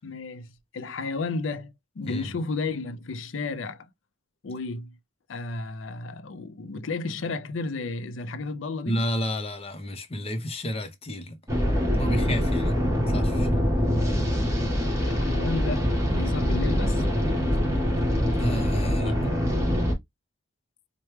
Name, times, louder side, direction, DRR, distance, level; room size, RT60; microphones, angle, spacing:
voice 1, 0.0-0.5 0.7-3.9 4.4-4.9 5.3-9.0 15.0-17.3, left 3 dB, 80° left, 0.5 m, -33 dB
voice 2, 2.0-2.4 8.8-11.4 12.0-12.8 13.1-13.6 18.4-19.2, equal, 30° left, 0.8 m, -31 dB
sound 1, 11.5-19.9, equal, 15° right, 1.5 m, -24 dB
4.5 x 2.2 x 3.2 m
head